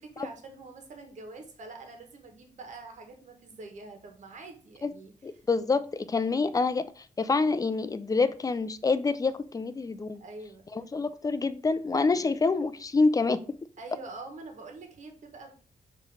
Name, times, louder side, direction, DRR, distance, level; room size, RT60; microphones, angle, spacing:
voice 1, 0.0-5.4 10.2-10.6 12.0-12.4 13.8-15.5, right 3 dB, 60° right, 1.6 m, -45 dB
voice 2, 5.2-10.2 10.8-13.6, left 4 dB, 25° left, 0.5 m, -27 dB
5.9 x 3.2 x 4.9 m
cardioid pair, 105°, 14 cm